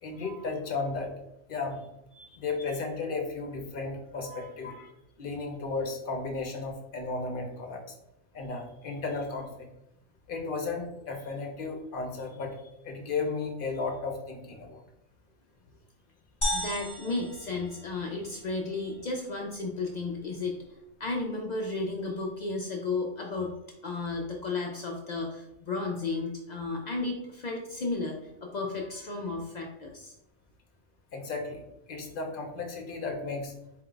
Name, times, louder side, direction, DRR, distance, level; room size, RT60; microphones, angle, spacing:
voice 1, 0.0-1.1 1.5-1.8 2.4-4.9 5.2-7.9 8.3-9.7 10.3-12.6 12.8-14.8 31.1-31.6 31.9-33.5, left 4 dB, 50° left, 3 dB, 0.8 m, -34 dB
voice 2, 4.2-4.5 16.5-23.6 23.8-30.1, left 3 dB, 70° left, 0 dB, 0.4 m, -34 dB
sound 1, 16.4-18.4, equal, 25° left, 0.9 m, -34 dB
4.5 x 2.2 x 3.7 m, 0.86 s
omnidirectional pair, 1.3 m